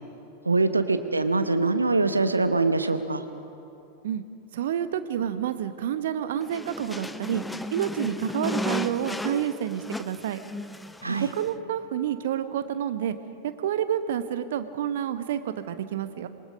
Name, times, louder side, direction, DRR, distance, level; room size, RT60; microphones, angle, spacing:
voice 1, 0.4-3.2 11.0-11.3, right 3 dB, 80° right, 10 dB, 1.0 m, -23 dB
voice 2, 4.5-7.4 7.7-10.4 11.1-13.1 13.6-16.3, right 10 dB, 55° right, 11 dB, 1.0 m, -29 dB
sound 1, 6.4-11.5, left 2 dB, 5° left, 0.5 m, -34 dB
26.5 x 19.0 x 5.2 m, 2.7 s
figure-of-eight pair, 90°, 0 cm